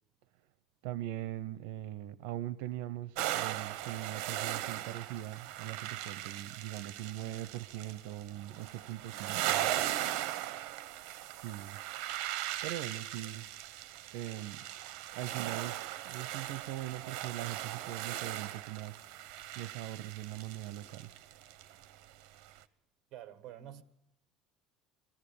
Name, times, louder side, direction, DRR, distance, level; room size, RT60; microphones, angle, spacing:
voice 1, 0.8-9.7 11.4-11.8 12.6-13.5 14.1-14.6 15.1-21.1, right 14 dB, 85° right, 0.7 m, -41 dB
sound 1, 3.2-22.1 22.4-22.6, right 14 dB, 65° right, 1.0 m, -38 dB
voice 2, 23.1-23.8, right 11 dB, 45° right, 1.6 m, -47 dB
21.5 x 14.5 x 8.6 m
cardioid pair, 175°, 0 cm